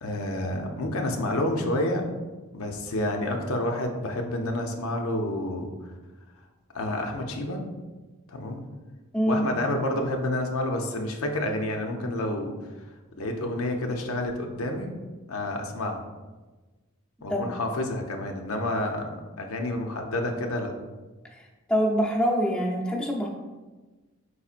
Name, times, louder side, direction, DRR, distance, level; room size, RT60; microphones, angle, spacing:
voice 1, 0.0-2.1 2.5-5.9 6.7-7.6 8.3-8.6 9.3-12.5 13.2-14.9 15.3-16.0 17.2-20.7, left 1 dB, 85° left, 3 dB, 0.6 m, -29 dB
voice 2, 9.1-9.5 17.3-17.5 21.7-23.3, equal, 5° left, -3 dB, 0.6 m, -24 dB
4.6 x 4.1 x 2.5 m, 1.2 s
head